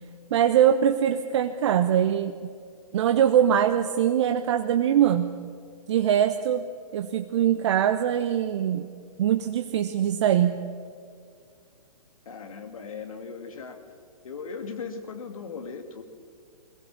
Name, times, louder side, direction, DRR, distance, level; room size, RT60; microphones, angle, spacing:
voice 1, 0.3-2.4 2.9-5.3 5.9-6.7 6.9-8.9 9.2-10.6, right 10 dB, 50° right, 8 dB, 1.0 m, -22 dB
voice 2, 12.3-13.8 14.2-16.0, left 5 dB, 65° left, 7 dB, 2.3 m, -38 dB
22.0 x 18.5 x 7.3 m, 2.2 s
figure-of-eight pair, 125°, 19 cm